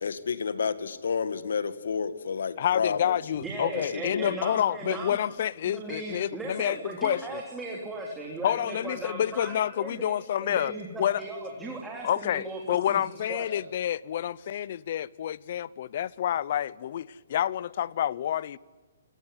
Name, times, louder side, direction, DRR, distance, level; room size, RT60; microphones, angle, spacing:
voice 1, 0.0-3.2 3.7-4.4, left 6 dB, 80° left, 1.9 m, -30 dB
voice 2, 2.6-7.4 8.4-10.7 11.0-11.2 12.0-18.6, left 10 dB, 50° left, 0.8 m, -28 dB
voice 3, 3.4-5.2 5.6-10.1 10.4-13.0 13.3-13.5, right 2 dB, 5° right, 3.4 m, -37 dB
26.5 x 18.5 x 9.8 m
hypercardioid pair, 155°, 0 cm